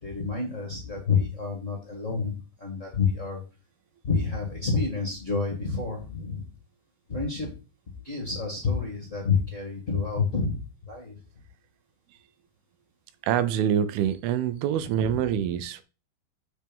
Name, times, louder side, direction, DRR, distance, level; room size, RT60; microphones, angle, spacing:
voice 1, 0.0-3.4 4.0-6.5 7.1-7.5 8.0-10.6 10.8-11.2 15.0-15.2, left 5 dB, 35° left, 1.3 m, -28 dB
voice 2, 13.2-15.8, right 9 dB, 85° right, 2.5 m, -25 dB
7.6 x 4.4 x 5.3 m
omnidirectional pair, 4.4 m